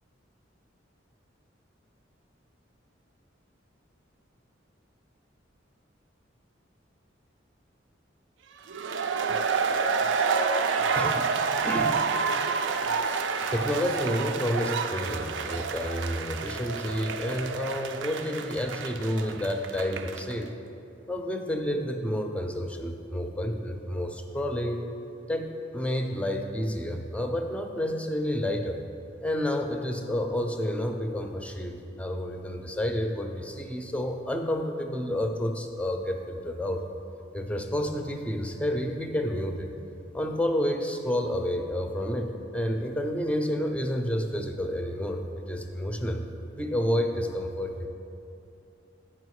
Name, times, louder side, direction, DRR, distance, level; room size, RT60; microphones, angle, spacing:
sound 1, 8.7-20.3, right 5 dB, 75° right, 0.4 m, -29 dB
voice 1, 10.9-12.0 13.5-20.5 21.1-24.8 25.3-28.8 29.2-36.8 37.3-39.7 40.1-46.3 46.6-47.9, equal, 5° left, 4 dB, 0.4 m, -30 dB
8.4 x 5.8 x 4.7 m, 2.8 s
head